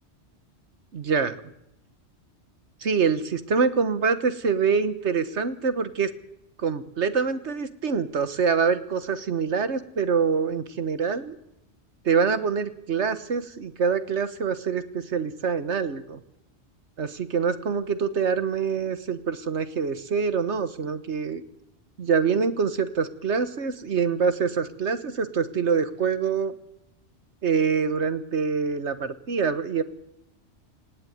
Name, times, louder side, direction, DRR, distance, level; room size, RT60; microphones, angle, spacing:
voice 1, 0.9-1.4 2.8-6.1 6.6-11.4 12.0-16.2 17.0-21.4 22.0-26.5 27.4-29.8, right 5 dB, 75° right, 12 dB, 1.5 m, -25 dB
19.0 x 16.5 x 9.4 m, 0.81 s
omnidirectional pair, 1.2 m